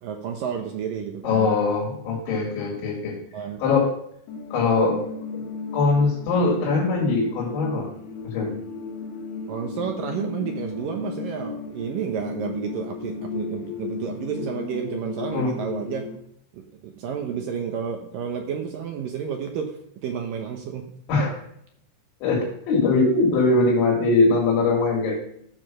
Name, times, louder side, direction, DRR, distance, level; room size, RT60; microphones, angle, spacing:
voice 1, 0.0-1.5 3.3-3.6 9.5-16.1 16.5-20.9, right 7 dB, 75° right, 3 dB, 2.1 m, -31 dB
voice 2, 1.2-3.2 3.6-3.9 4.5-5.1 5.3-5.4 5.7-7.9 8.2-8.5 15.3-15.5 21.1-21.3 22.2-25.1, left 3 dB, 85° left, -2 dB, 5.0 m, -21 dB
sound 1, 4.3-16.2, left 4 dB, 70° left, 2.5 m, -35 dB
15.0 x 5.0 x 6.3 m, 0.69 s
omnidirectional pair, 5.2 m